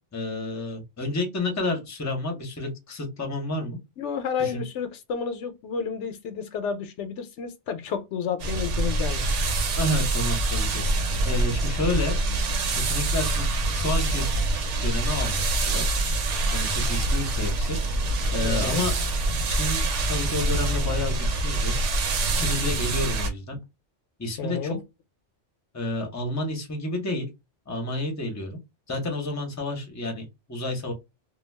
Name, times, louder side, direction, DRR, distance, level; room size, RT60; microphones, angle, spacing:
voice 1, 0.1-3.8 4.4-4.6 9.8-10.8 11.2-12.2 12.7-13.5 13.7-14.3 14.8-16.0 16.5-17.8 18.3-19.0 19.3-21.7 22.4-23.6 24.2-24.8 25.7-27.3 27.7-28.6 28.9-30.9, left 1 dB, 20° left, 0.6 m, -30 dB
voice 2, 4.0-9.4 18.4-18.8 24.4-24.8, left 6 dB, 75° left, 0.9 m, -31 dB
sound 1, 8.4-23.3, right 2 dB, 80° right, 1.0 m, -25 dB
2.3 x 2.2 x 3.2 m
omnidirectional pair, 1.2 m